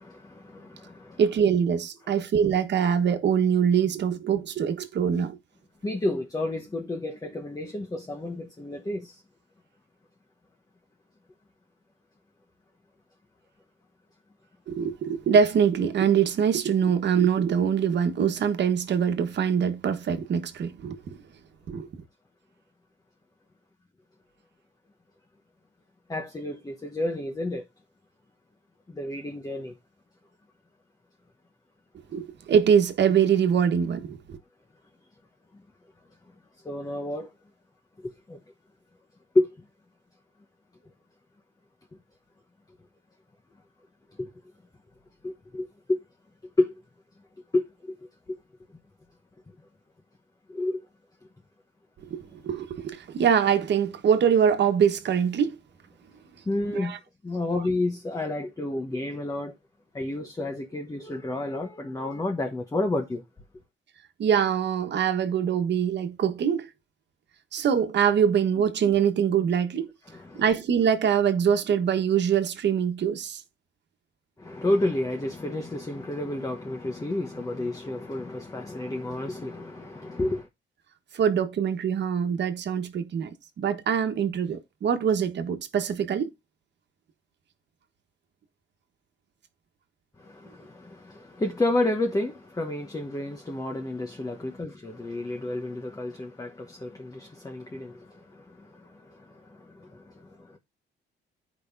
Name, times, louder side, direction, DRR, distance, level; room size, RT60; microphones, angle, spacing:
voice 1, 0.0-1.2 2.1-2.2 5.8-9.2 26.1-27.6 28.9-29.8 35.5-35.7 36.6-37.3 38.0-38.4 39.3-39.7 44.1-44.3 45.2-46.0 46.6-46.7 47.5-47.9 48.3-48.4 50.5-50.8 56.4-57.0 57.2-59.6 59.9-63.2 70.0-70.4 74.4-80.5 90.2-100.6, left 2 dB, 15° left, 1.1 m, -30 dB
voice 2, 1.2-5.4 14.7-21.2 21.7-21.9 32.1-34.4 52.0-55.6 56.7-57.0 64.2-66.7 67.5-69.9 70.3-73.4 81.1-86.3, right 7 dB, 60° right, 1.3 m, -24 dB
14.0 x 5.2 x 2.7 m
cardioid pair, 90°, 20 cm